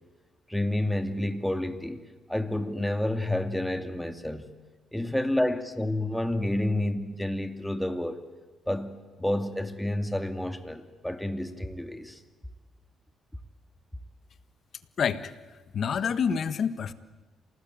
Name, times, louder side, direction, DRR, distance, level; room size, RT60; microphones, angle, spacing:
voice 1, 0.5-2.0 2.3-4.5 4.9-8.2 8.7-12.2, left 1 dB, 5° left, 8 dB, 2.4 m, -29 dB
voice 2, 15.0-15.3 15.7-16.9, left 7 dB, 55° left, 13 dB, 1.5 m, -27 dB
27.5 x 19.0 x 8.9 m, 1.4 s
cardioid pair, 90°, 0 cm